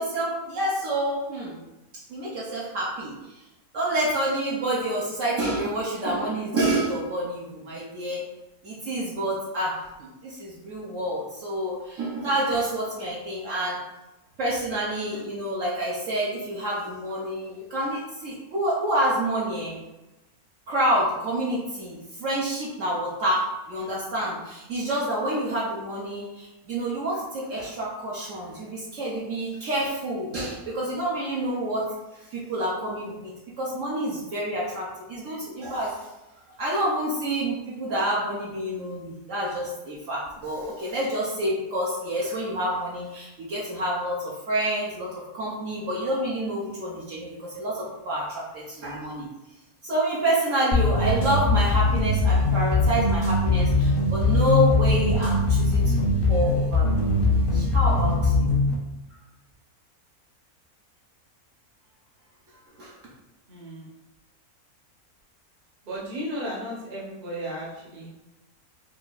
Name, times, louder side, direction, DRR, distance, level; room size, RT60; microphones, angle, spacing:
voice 1, 0.0-1.6 2.1-3.2 3.7-8.3 8.6-13.8 14.4-19.8 20.7-31.9 32.3-36.1 36.6-49.3 49.8-58.5 62.8-62.9, right 1 dB, 65° right, -5 dB, 1.0 m, -28 dB
sound 1, 50.7-58.7, left 2 dB, 55° left, 0.6 m, -21 dB
voice 2, 63.5-63.9 65.8-68.1, equal, 35° right, -5 dB, 0.9 m, -34 dB
4.6 x 2.5 x 2.3 m, 1.0 s
omnidirectional pair, 1.6 m